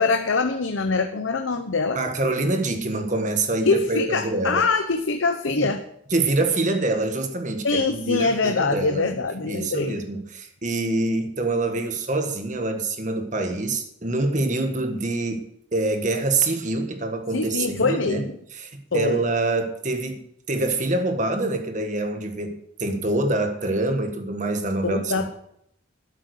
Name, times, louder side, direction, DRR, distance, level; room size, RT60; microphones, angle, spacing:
voice 1, 0.0-2.0 3.7-5.8 7.6-10.0 17.3-18.3 18.9-19.2 24.8-25.4, left 3 dB, 85° left, 7 dB, 0.8 m, -23 dB
voice 2, 1.9-4.6 5.6-5.7 6.1-9.0 9.4-18.2 18.5-25.4, right 2 dB, 40° right, 5 dB, 1.6 m, -25 dB
12.5 x 7.6 x 6.5 m, 0.73 s
head